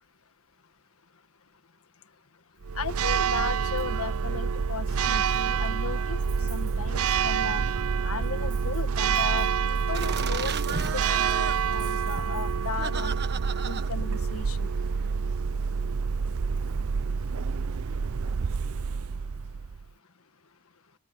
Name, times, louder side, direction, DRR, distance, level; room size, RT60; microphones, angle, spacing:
Church bell, 2.6-19.9, right 6 dB, 70° right, 0.5 m, -27 dB
voice 1, 2.7-6.2 6.5-7.6 8.0-13.2 13.6-14.7, left 5 dB, 70° left, 1.5 m, -36 dB
sound 1, 9.9-15.1, right 6 dB, 50° right, 1.4 m, -36 dB
open air
head